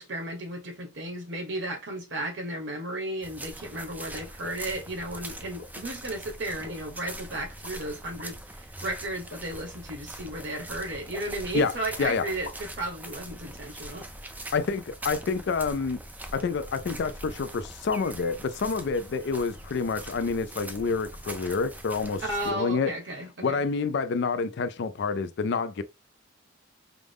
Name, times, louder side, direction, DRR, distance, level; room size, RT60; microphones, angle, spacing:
voice 1, 0.0-14.1 14.4-14.5 22.3-23.6, right 1 dB, 65° right, 1.3 m, -34 dB
sound 1, 3.2-22.5, right 1 dB, 10° right, 0.4 m, -42 dB
sound 2, 4.4-4.7 5.6-5.8 6.6-7.2 7.6-7.7 8.2-8.3 9.3-9.6 10.4-10.5 11.1-11.7 11.9-12.0 12.3-12.8, left 3 dB, 85° left, 1.0 m, -46 dB
voice 2, 12.0-12.3 14.5-16.0 16.3-22.9 23.4-25.8, left 4 dB, 60° left, 0.4 m, -28 dB
4.9 x 2.0 x 3.5 m
head